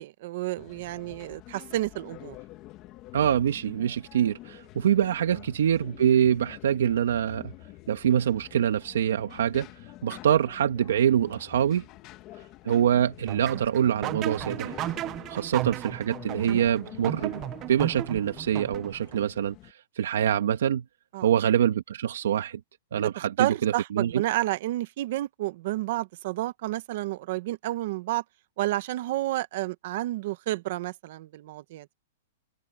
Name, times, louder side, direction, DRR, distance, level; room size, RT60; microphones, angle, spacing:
voice 1, 0.0-2.4 5.3-5.4 15.3-15.5 21.1-21.3 23.0-28.2 28.6-31.9, right 16 dB, 45° right, 1.0 m, -30 dB
sound 1, 0.6-19.7, left 16 dB, 25° left, 1.4 m, -47 dB
voice 2, 3.1-7.5 7.9-9.7 10.0-11.8 12.6-14.7 15.3-17.4 17.7-20.8 21.2-22.6 22.9-24.2, right 9 dB, 80° right, 1.5 m, -25 dB
sound 2, 13.3-19.2, right 14 dB, 20° right, 0.4 m, -35 dB
supercardioid pair, 175°, 0 cm